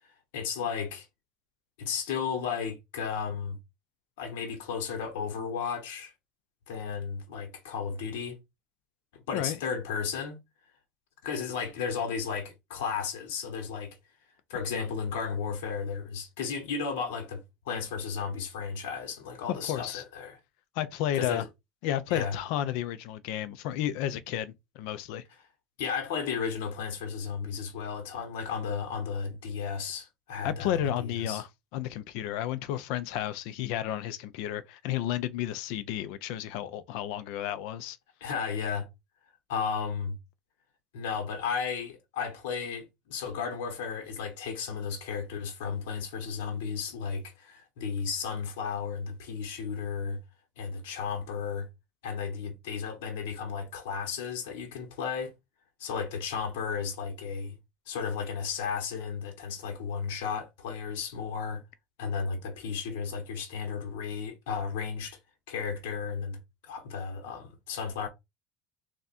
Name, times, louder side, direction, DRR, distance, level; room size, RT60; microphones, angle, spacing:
voice 1, 0.3-1.1 1.8-3.6 4.2-6.1 6.7-8.4 9.3-10.4 11.2-14.0 14.5-20.4 21.1-21.5 22.1-22.4 25.8-31.4 38.2-38.9 39.5-40.2 40.9-50.2 50.6-51.7 52.0-55.3 55.8-57.6 57.9-61.6 62.0-65.2 65.5-68.1, left 6 dB, 90° left, 1.1 m, -34 dB
voice 2, 19.5-20.0 20.8-21.4 21.8-25.2 30.4-31.5 31.7-38.0, left 12 dB, 75° left, 0.5 m, -32 dB
3.5 x 2.5 x 4.1 m
supercardioid pair, 125°, 0 cm